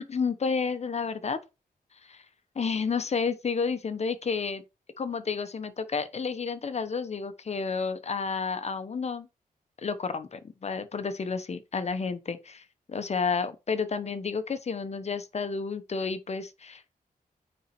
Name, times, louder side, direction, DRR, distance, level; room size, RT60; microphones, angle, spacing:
voice 1, 0.0-1.4 2.0-2.2 2.5-4.6 5.0-9.3 9.8-16.9, left 5 dB, 45° left, 0.9 m, -31 dB
9.2 x 4.3 x 4.3 m
wide cardioid pair, 115°, 16 cm